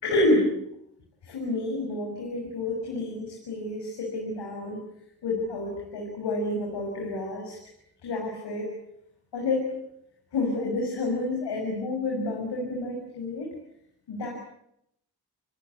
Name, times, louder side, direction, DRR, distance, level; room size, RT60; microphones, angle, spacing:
voice 1, 0.0-0.5 1.2-4.8 5.2-7.6 8.0-8.7 9.3-9.7 10.3-13.5 14.1-14.3, left 2 dB, 90° left, 0 dB, 6.5 m, -29 dB
29.5 x 20.0 x 8.3 m, 0.76 s
cardioid pair, 60°, 41 cm